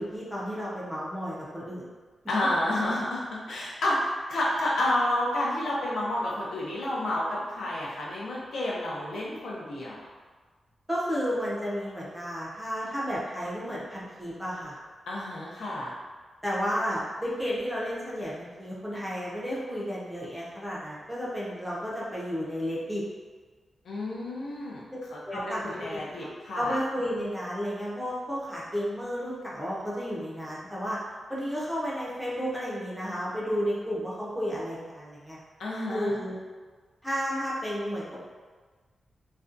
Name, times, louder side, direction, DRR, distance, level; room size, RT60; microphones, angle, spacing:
voice 1, 0.0-1.9 10.9-14.8 16.4-23.0 24.9-25.0 25.3-31.0 31.3-35.4 35.9-36.3 37.0-38.2, equal, 5° right, -7 dB, 0.5 m, -32 dB
voice 2, 2.3-4.0 4.3-10.0 15.1-15.9 23.8-26.8 35.6-36.2, left 1 dB, 80° left, -5 dB, 0.6 m, -30 dB
2.4 x 2.2 x 2.5 m, 1.4 s
wide cardioid pair, 180°, 0 cm